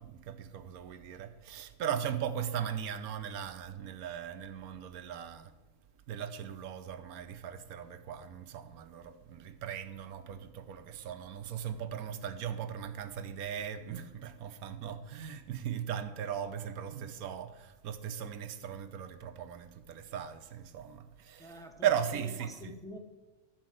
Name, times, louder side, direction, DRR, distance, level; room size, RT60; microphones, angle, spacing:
voice 1, 0.0-5.5 6.1-22.7, right 9 dB, 75° right, 1.2 m, -38 dB
voice 2, 21.4-23.0, left 1 dB, 5° left, 0.8 m, -47 dB
12.5 x 4.6 x 7.6 m
omnidirectional pair, 1.6 m